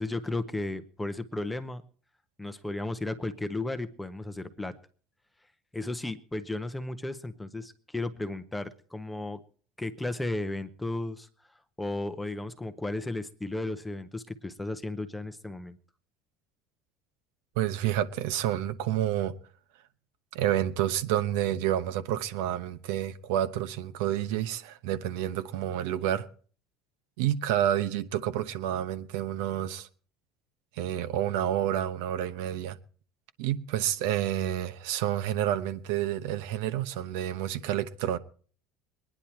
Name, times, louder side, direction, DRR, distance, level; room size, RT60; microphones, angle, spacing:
voice 1, 0.0-1.8 2.4-4.7 5.7-9.4 9.8-11.3 11.8-15.8, left 2 dB, 5° left, 0.7 m, -34 dB
voice 2, 17.6-19.3 20.3-26.3 27.2-29.9 30.8-32.8 33.4-38.2, right 12 dB, 80° right, 1.0 m, -29 dB
22.0 x 10.0 x 4.4 m
cardioid pair, 160°, 0 cm